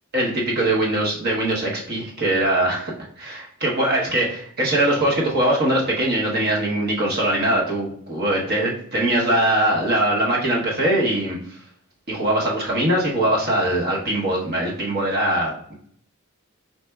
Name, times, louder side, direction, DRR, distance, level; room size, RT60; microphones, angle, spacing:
voice 1, 0.1-2.9 3.2-11.4 12.1-15.7, right 1 dB, 45° right, -3 dB, 1.0 m, -21 dB
4.3 x 4.0 x 2.3 m, 0.64 s
head